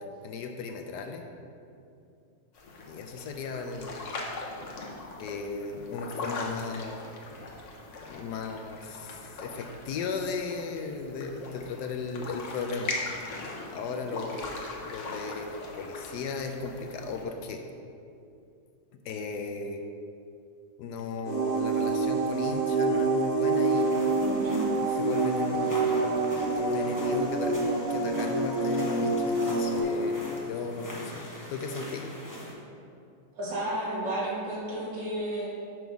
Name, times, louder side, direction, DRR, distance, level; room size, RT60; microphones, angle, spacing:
voice 1, 0.0-1.2 2.9-4.2 5.2-7.1 8.1-12.9 13.7-17.6 19.0-19.8 20.8-23.9 24.8-26.3 26.5-32.1, left 4 dB, 75° left, 5 dB, 1.1 m, -36 dB
sound 1, 2.5-17.2, left 3 dB, 50° left, 1.0 m, -40 dB
sound 2, 21.2-29.8, right 3 dB, 45° right, 1.6 m, -27 dB
sound 3, 23.5-32.5, left 1 dB, 20° left, 0.5 m, -42 dB
voice 2, 24.2-24.6 33.4-35.5, right 1 dB, 85° right, -5 dB, 2.3 m, -32 dB
6.2 x 5.3 x 4.6 m, 2.5 s
omnidirectional pair, 1.9 m